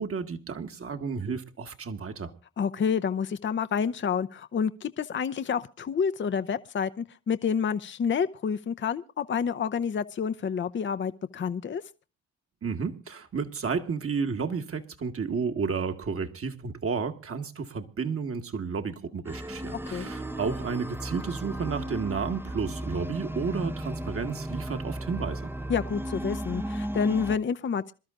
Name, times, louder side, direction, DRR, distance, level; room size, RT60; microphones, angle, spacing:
voice 1, 0.0-2.3 12.6-25.5, right 5 dB, 45° right, 1.7 m, -32 dB
voice 2, 2.6-11.8 19.9-20.1 25.7-27.9, left 6 dB, 35° left, 0.7 m, -29 dB
sound 1, 19.3-27.4, right 1 dB, 5° right, 0.7 m, -35 dB
26.5 x 12.5 x 2.5 m
hypercardioid pair, 55°, 32 cm